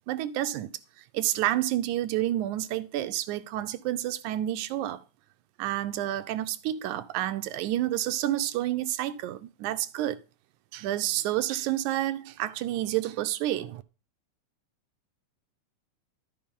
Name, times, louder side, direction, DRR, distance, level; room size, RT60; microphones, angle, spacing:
voice 1, 0.1-0.7 1.1-5.0 5.6-10.2 10.7-13.8, right 13 dB, 90° right, 2.1 m, -29 dB
13.5 x 4.7 x 3.6 m
omnidirectional pair, 3.4 m